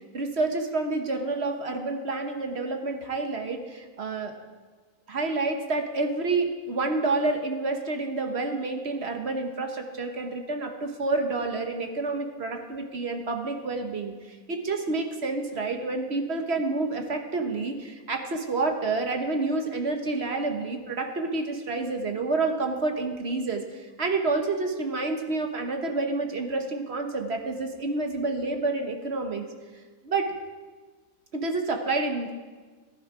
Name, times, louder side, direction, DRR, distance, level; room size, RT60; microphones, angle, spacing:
voice 1, 0.1-4.3 5.1-29.5 30.0-30.3 31.3-32.3, right 3 dB, 45° right, 4 dB, 1.3 m, -29 dB
15.5 x 11.0 x 4.9 m, 1.4 s
omnidirectional pair, 1.6 m